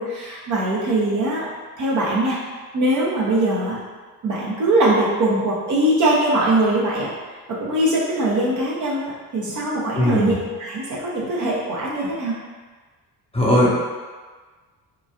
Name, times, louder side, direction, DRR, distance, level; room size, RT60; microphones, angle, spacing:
voice 1, 0.0-2.4 2.7-3.8 4.2-7.1 7.6-12.3, right 1 dB, 35° right, -5 dB, 0.7 m, -21 dB
voice 2, 10.0-10.3 13.3-13.7, equal, 10° left, -8 dB, 0.7 m, -17 dB
3.0 x 2.3 x 2.3 m, 1.4 s
figure-of-eight pair, 50°, 49 cm